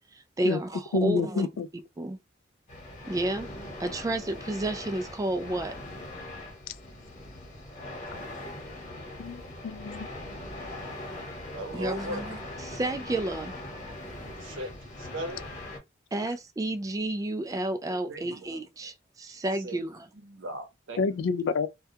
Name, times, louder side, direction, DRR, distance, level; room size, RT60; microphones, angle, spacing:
voice 1, 0.1-1.5 2.0-2.2 3.1-3.5 3.8-5.7 11.7-13.5 16.1-20.1, right 1 dB, 20° right, 0.3 m, -31 dB
voice 2, 0.9-1.7 9.2-10.1 21.0-21.7, left 4 dB, 80° left, 0.3 m, -28 dB
sound 1, 2.7-15.8, left 1 dB, 40° left, 1.0 m, -41 dB
voice 3, 11.5-12.2 14.4-15.5 18.1-18.6 19.6-19.8 20.2-21.2, right 1 dB, 85° right, 0.7 m, -38 dB
2.2 x 2.2 x 2.7 m
head